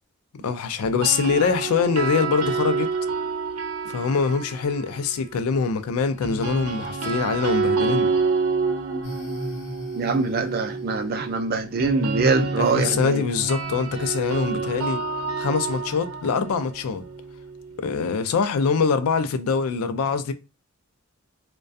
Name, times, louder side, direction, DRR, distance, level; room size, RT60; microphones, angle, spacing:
voice 1, 0.4-2.9 3.9-8.2 12.6-15.0 15.4-17.0 17.8-20.3, left 5 dB, 80° left, 0.4 m, -24 dB
sound 1, 0.8-5.0 6.2-18.1, right 4 dB, 80° right, 0.7 m, -28 dB
sound 2, 9.0-13.6, equal, 50° left, 0.7 m, -40 dB
voice 2, 9.9-13.2, right 3 dB, 45° right, 0.3 m, -23 dB
2.5 x 2.2 x 2.3 m
head